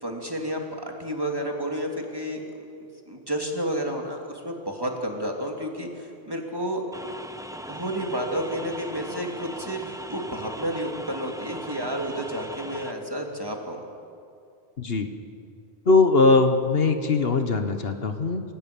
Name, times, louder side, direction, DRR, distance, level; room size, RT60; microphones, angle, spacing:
voice 1, 0.0-2.4 3.1-6.8 7.7-13.8, equal, 20° right, 1 dB, 2.9 m, -31 dB
sound 1, 6.9-12.9, right 1 dB, 5° right, 0.9 m, -39 dB
voice 2, 14.8-15.1 15.9-18.4, left 3 dB, 60° left, 7 dB, 1.4 m, -20 dB
28.5 x 16.5 x 8.6 m, 2.5 s
omnidirectional pair, 1.1 m